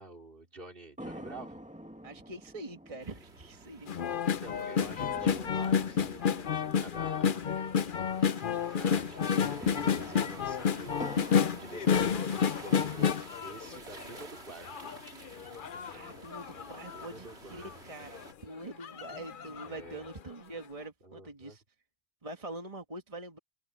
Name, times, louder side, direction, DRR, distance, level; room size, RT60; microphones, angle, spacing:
voice 1, 0.0-1.6 4.1-7.5 8.7-11.1 11.5-13.1 13.4-15.0 16.9-17.8 19.6-20.1 21.0-21.6, right 2 dB, 55° right, 3.2 m, -49 dB
sound 1, 1.0-8.6 8.8-8.9 9.4-12.7 13.3-14.2, equal, 5° right, 1.8 m, -49 dB
voice 2, 2.0-3.9 15.9-21.6 22.2-23.4, right 2 dB, 30° right, 1.7 m, -44 dB
sound 2, 3.0-18.3, right 3 dB, 80° right, 2.7 m, -51 dB
sound 3, 3.9-14.2 14.6-17.1 17.6-17.7 18.0-18.3 18.8-19.8 20.1-20.2, left 7 dB, 55° left, 0.9 m, -30 dB
omnidirectional pair, 1.1 m